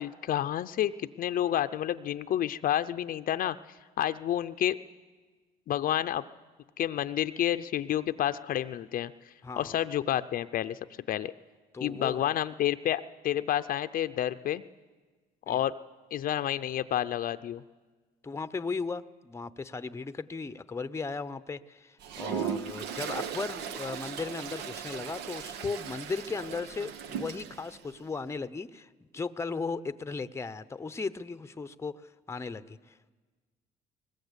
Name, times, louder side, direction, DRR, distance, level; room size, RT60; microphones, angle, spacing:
voice 1, 0.0-3.6 4.0-4.8 5.7-6.2 6.8-9.1 9.6-10.8 11.1-11.3 11.8-14.6 15.5-15.7 16.1-17.6, left 11 dB, 55° left, 12 dB, 0.6 m, -29 dB
voice 2, 9.4-9.8 11.7-12.2 15.5-15.6 18.2-33.1, left 4 dB, 15° left, 13 dB, 0.7 m, -36 dB
Toilet flush, 22.0-27.8, right 8 dB, 85° right, 1.1 m, -37 dB
22.0 x 20.0 x 8.2 m, 1.4 s
cardioid pair, 110°, 17 cm